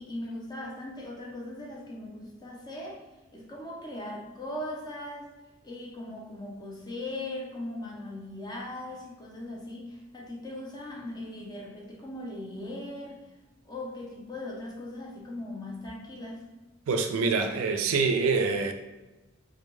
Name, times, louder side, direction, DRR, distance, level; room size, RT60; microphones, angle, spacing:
voice 1, 0.0-3.0 3.3-5.3 5.6-13.2 13.7-16.4, left 1 dB, 20° left, -2 dB, 0.5 m, -39 dB
voice 2, 16.9-18.7, right 4 dB, 90° right, 5 dB, 0.3 m, -25 dB
2.2 x 2.1 x 3.0 m, 1.1 s
head